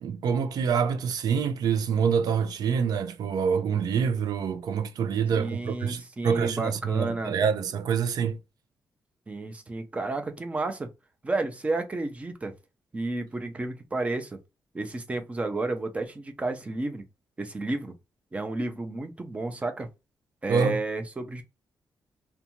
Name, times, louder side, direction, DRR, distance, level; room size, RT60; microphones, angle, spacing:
voice 1, 0.0-8.4 20.5-20.8, right 6 dB, 70° right, 0.4 m, -26 dB
voice 2, 5.3-7.3 9.3-10.9 11.2-12.5 12.9-14.4 14.7-17.0 17.4-17.9 18.3-19.9 20.4-21.4, right 2 dB, 20° right, 0.5 m, -31 dB
2.5 x 2.2 x 2.8 m
wide cardioid pair, 135°, 7 cm